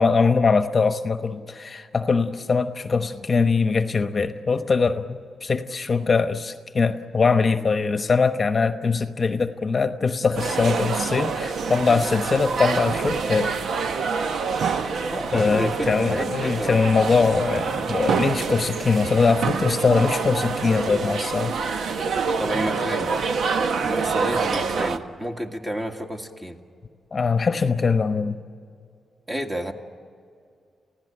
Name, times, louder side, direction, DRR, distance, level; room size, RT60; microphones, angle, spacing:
voice 1, 0.0-13.5 15.3-21.6 27.1-28.4, left 4 dB, 35° left, 8 dB, 1.0 m, -22 dB
sound 1, 10.3-25.0, right 5 dB, 70° right, 1.1 m, -26 dB
voice 2, 15.1-16.9 22.4-23.1 23.8-26.6 29.3-29.7, equal, 15° right, 3 dB, 2.0 m, -31 dB
29.5 x 16.5 x 9.0 m, 2.3 s
cardioid pair, 100°, 0 cm